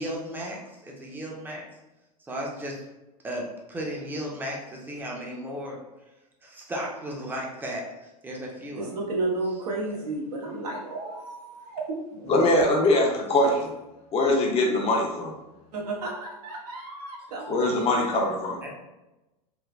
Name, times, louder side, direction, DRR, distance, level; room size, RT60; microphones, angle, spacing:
voice 1, 0.0-1.6 2.2-2.8 3.2-5.8 6.4-8.9 9.9-10.0 12.1-12.9 18.6-18.7, equal, 10° right, -2 dB, 0.6 m, -35 dB
voice 2, 8.8-12.0 15.7-17.9, right 2 dB, 80° right, -3 dB, 0.9 m, -32 dB
voice 3, 12.3-13.7 14.1-15.3 17.5-18.6, left 2 dB, 30° left, -1 dB, 0.6 m, -22 dB
3.2 x 2.1 x 2.4 m, 1.0 s
hypercardioid pair, 110°, 20 cm